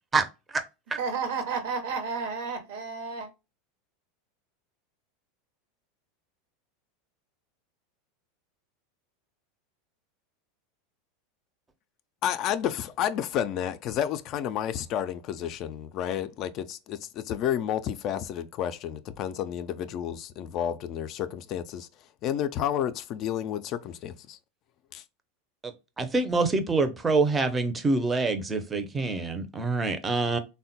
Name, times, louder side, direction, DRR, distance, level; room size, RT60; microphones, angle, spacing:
voice 1, 0.1-0.6 25.6-30.4, right 3 dB, 20° right, 0.5 m, -26 dB
voice 2, 1.0-3.3, right 5 dB, 70° right, 0.8 m, -31 dB
voice 3, 12.2-21.9 22.2-24.4 24.9-25.0, left 10 dB, 45° left, 0.3 m, -31 dB
3.5 x 2.1 x 2.7 m
hypercardioid pair, 85°, 0 cm